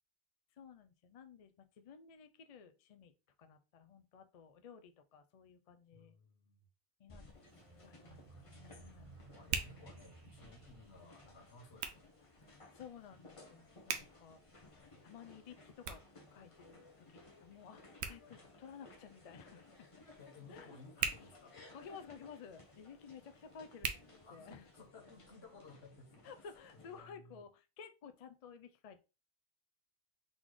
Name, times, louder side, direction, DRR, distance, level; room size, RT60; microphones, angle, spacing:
voice 1, 0.6-3.1 3.4-6.1 7.0-7.2 7.8-9.1 12.5-14.4 14.7-16.0 16.3-19.9 20.5-20.8 21.1-21.2 21.7-24.6 26.2-29.0, left 6 dB, 55° left, 0.4 m, -55 dB
voice 2, 5.9-6.7 9.3-12.0 20.2-21.6 24.2-26.5 26.7-27.4, left 3 dB, 70° left, 1.4 m, -58 dB
sound 1, 7.1-27.0, left 2 dB, 30° left, 0.9 m, -60 dB
Hands, 7.2-24.9, right 7 dB, 85° right, 0.9 m, -47 dB
sound 2, 7.3-12.2, right 4 dB, 35° right, 0.8 m, -59 dB
3.9 x 3.8 x 3.1 m
omnidirectional pair, 1.1 m